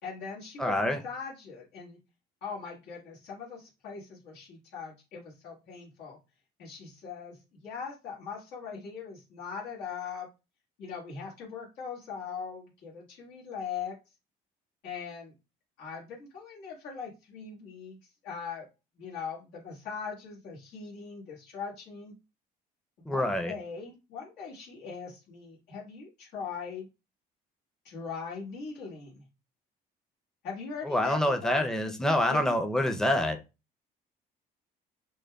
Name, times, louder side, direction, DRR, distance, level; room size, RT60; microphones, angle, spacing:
voice 1, 0.0-2.0 2.4-6.2 6.6-10.3 10.8-14.0 14.8-15.3 15.8-18.0 18.2-18.6 19.0-22.1 23.0-26.9 27.8-29.3 30.4-31.6 32.3-32.4, left 6 dB, 85° left, 1.4 m, -40 dB
voice 2, 0.6-1.0 23.1-23.5 30.9-33.4, left 1 dB, 5° left, 0.5 m, -26 dB
5.1 x 2.2 x 2.2 m
cardioid pair, 110°, 17 cm